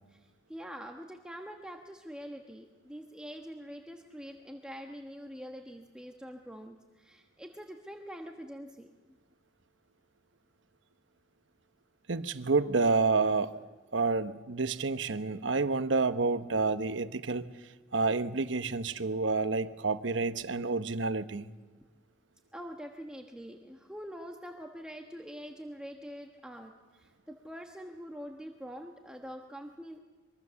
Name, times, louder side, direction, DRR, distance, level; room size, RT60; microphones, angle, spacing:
voice 1, 0.1-8.9 22.5-30.0, equal, 5° right, 1.2 m, -45 dB
voice 2, 12.1-13.5 13.9-17.5 17.9-21.5, right 3 dB, 70° right, 1.0 m, -29 dB
24.0 x 23.5 x 7.0 m
head